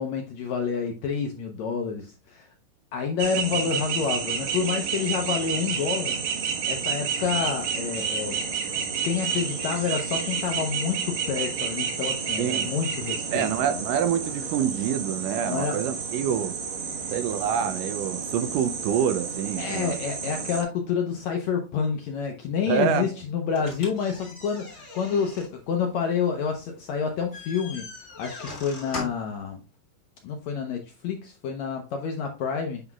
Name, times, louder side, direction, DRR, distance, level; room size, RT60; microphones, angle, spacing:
voice 1, 0.0-2.5 2.9-6.2 6.7-8.5 9.0-13.8 15.4-15.8 19.6-27.9 28.2-29.6 30.2-32.8, left 6 dB, 75° left, 1.6 m, -28 dB
sound 1, 3.2-20.6, right 6 dB, 60° right, 2.2 m, -30 dB
voice 2, 12.4-12.7 13.3-16.6 17.1-20.0 22.7-23.1, right 9 dB, 80° right, 2.0 m, -26 dB
sound 2, 23.5-29.4, left 3 dB, 30° left, 1.3 m, -41 dB
8.1 x 5.6 x 2.3 m
omnidirectional pair, 4.0 m